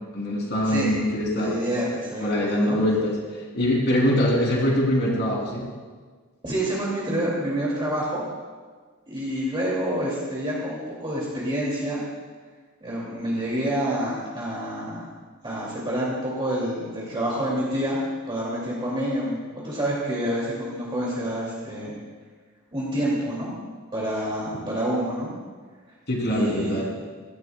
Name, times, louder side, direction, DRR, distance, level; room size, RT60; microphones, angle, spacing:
voice 1, 0.1-1.6 2.2-3.1 3.5-5.6 26.1-26.8, left 1 dB, 50° left, -2 dB, 3.3 m, -23 dB
voice 2, 0.6-1.0 1.3-2.8 6.4-8.2 9.1-12.0 12.8-15.1 15.4-18.0 18.3-21.9 22.7-23.5 23.9-25.3 26.2-26.8, right 1 dB, 25° right, -6 dB, 2.6 m, -28 dB
16.5 x 14.5 x 2.4 m, 1.5 s
head